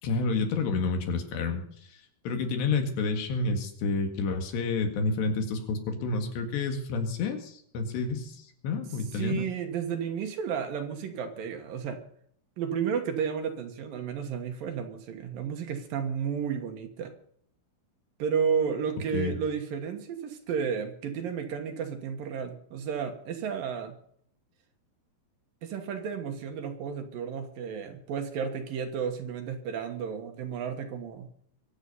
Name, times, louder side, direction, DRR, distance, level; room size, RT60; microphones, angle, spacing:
voice 1, 0.0-1.6 2.3-9.5 19.1-19.3, left 4 dB, 85° left, 5 dB, 4.2 m, -29 dB
voice 2, 9.1-12.0 12.6-17.1 18.2-24.0 25.6-31.3, right 7 dB, 65° right, 5 dB, 2.8 m, -32 dB
23.0 x 8.2 x 5.5 m, 0.64 s
omnidirectional pair, 4.8 m